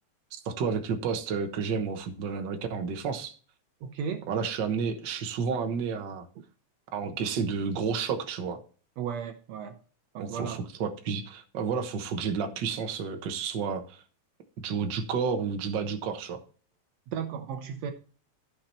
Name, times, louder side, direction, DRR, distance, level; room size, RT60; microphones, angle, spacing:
voice 1, 0.4-3.3 4.3-6.3 6.9-8.6 10.2-14.0 14.6-16.4, right 6 dB, 50° right, 6 dB, 1.4 m, -31 dB
voice 2, 3.8-4.3 9.0-9.8 10.1-10.6 17.1-17.9, right 7 dB, 70° right, 8 dB, 1.8 m, -35 dB
13.5 x 5.9 x 4.3 m, 0.40 s
omnidirectional pair, 3.3 m